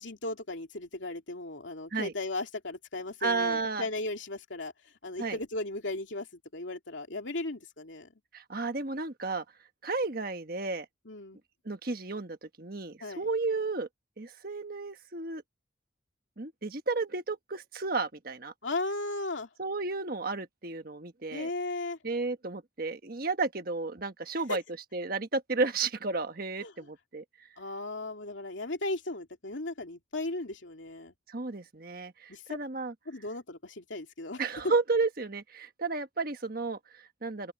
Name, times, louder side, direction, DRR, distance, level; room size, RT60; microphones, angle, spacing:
voice 1, 0.0-4.7 5.0-8.1 11.0-11.4 13.0-13.3 18.6-19.5 21.3-22.0 24.5-24.6 26.6-26.7 27.6-31.1 32.3-32.6 33.1-34.4, left 2 dB, 75° left, 2.7 m, -36 dB
voice 2, 3.2-3.9 5.2-5.4 8.3-9.4 9.8-10.9 11.6-13.9 14.2-15.4 16.4-18.5 19.6-21.5 22.0-24.6 24.9-27.2 31.3-32.9 34.4-37.5, right 3 dB, 50° right, 1.4 m, -32 dB
open air
head